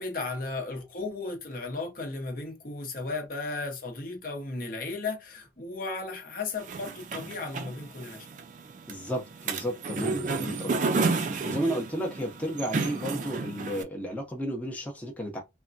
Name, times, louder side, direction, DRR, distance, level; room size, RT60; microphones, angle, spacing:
voice 1, 0.0-8.3, left 3 dB, 50° left, 0.7 m, -35 dB
sound 1, 6.6-13.8, right 4 dB, 45° right, 0.3 m, -32 dB
voice 2, 8.9-15.4, equal, 10° left, 0.5 m, -33 dB
3.5 x 2.1 x 2.5 m
head